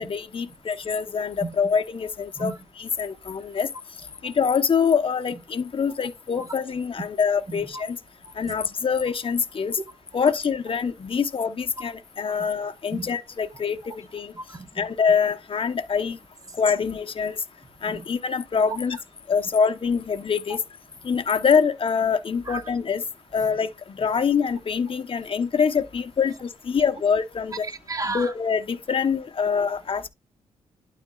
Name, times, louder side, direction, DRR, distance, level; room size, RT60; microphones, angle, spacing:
voice 1, 0.0-2.5 2.8-3.7 4.2-8.0 8.4-9.8 10.1-14.3 14.8-16.2 16.6-17.4 17.8-19.0 19.3-20.6 21.0-23.0 23.3-27.7 28.1-30.1, left 6 dB, 45° left, 1.0 m, -25 dB
voice 2, 7.5-7.8 8.4-8.5 9.8-9.9 11.8-11.9 12.9-13.1 13.5-13.6 14.3-14.9 17.8-18.1 22.4-22.6 27.6-28.3, right 3 dB, 30° right, 1.4 m, -34 dB
12.0 x 4.2 x 2.4 m
supercardioid pair, 55°, 12 cm